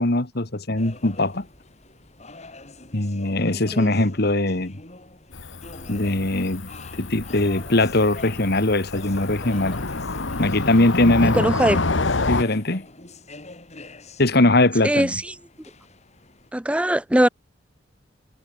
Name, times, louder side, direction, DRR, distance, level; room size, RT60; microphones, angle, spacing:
voice 1, 0.0-1.5 2.9-4.8 5.9-9.8 10.4-11.4 12.3-12.9 14.2-15.1, left 2 dB, 55° left, 2.0 m, -21 dB
sound 1, 0.8-16.5, left 2 dB, 35° left, 4.5 m, -45 dB
Cricket / Motor vehicle (road), 5.3-12.4, left 3 dB, 80° left, 1.6 m, -28 dB
voice 2, 11.2-11.8 14.8-15.4 16.5-17.3, right 1 dB, 5° right, 0.6 m, -21 dB
head